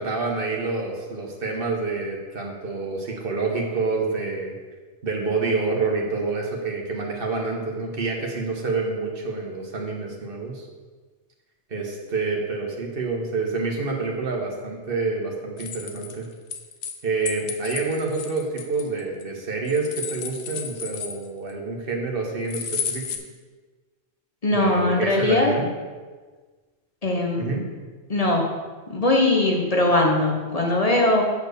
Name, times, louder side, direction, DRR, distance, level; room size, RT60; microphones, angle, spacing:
voice 1, 0.0-4.6 5.0-10.7 11.7-16.3 17.0-23.0 24.5-25.7 27.4-27.6, right 3 dB, 50° right, 0 dB, 1.5 m, -27 dB
sound 1, 15.6-17.0 17.2-19.2 19.6-21.5 22.5-23.2, left 7 dB, 60° left, 0.9 m, -32 dB
voice 2, 24.4-25.6 27.0-27.5 28.1-28.5 28.9-31.2, left 2 dB, 35° left, 0 dB, 1.1 m, -20 dB
8.4 x 4.4 x 6.7 m, 1.4 s
omnidirectional pair, 1.2 m